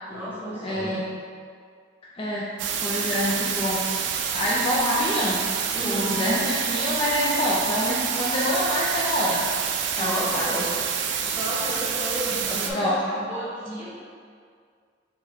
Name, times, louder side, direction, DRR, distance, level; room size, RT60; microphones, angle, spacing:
voice 1, 0.1-0.9 5.7-6.2 10.0-10.7 11.3-13.9, equal, 10° right, -11 dB, 1.1 m, -32 dB
voice 2, 0.6-1.0 2.1-2.5 2.8-3.8 4.3-5.4 5.8-9.4 10.0-10.5 11.6-11.7 12.7-12.9, equal, 30° left, -6 dB, 0.4 m, -26 dB
sound 1, 2.6-12.7, right 7 dB, 70° right, 0.3 m, -27 dB
4.9 x 2.9 x 2.7 m, 2.1 s
head